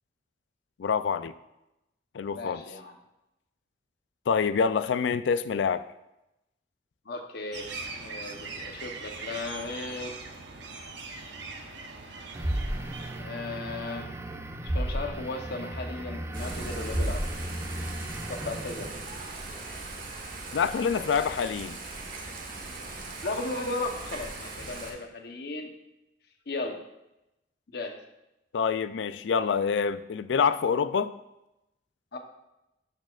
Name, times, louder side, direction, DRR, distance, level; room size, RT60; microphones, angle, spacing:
voice 1, 0.8-1.3 2.1-2.6 4.3-5.8 20.5-21.8 28.5-31.1, left 6 dB, 80° left, 0.4 m, -26 dB
voice 2, 2.3-2.9 7.0-7.7 8.0-10.1 13.2-14.1 14.6-17.2 18.3-18.9 23.2-25.8 26.5-26.8 27.7-28.0 32.1-32.2, left 2 dB, 60° left, 0.9 m, -36 dB
sound 1, 7.5-13.2, right 3 dB, 70° right, 0.9 m, -41 dB
sound 2, 12.3-19.1, right 1 dB, 15° right, 0.5 m, -34 dB
Thunder / Rain, 16.3-24.9, right 2 dB, 50° right, 1.3 m, -39 dB
12.5 x 6.5 x 2.4 m
head